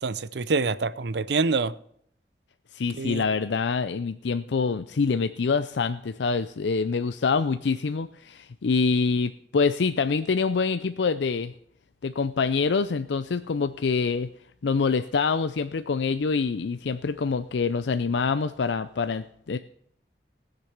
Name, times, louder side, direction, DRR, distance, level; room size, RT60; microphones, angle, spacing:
voice 1, 0.0-1.7 2.9-3.3, right 4 dB, 75° right, 0.6 m, -26 dB
voice 2, 2.7-11.5 12.0-14.3 14.6-19.6, left 4 dB, 85° left, 0.5 m, -25 dB
19.5 x 6.7 x 6.0 m
head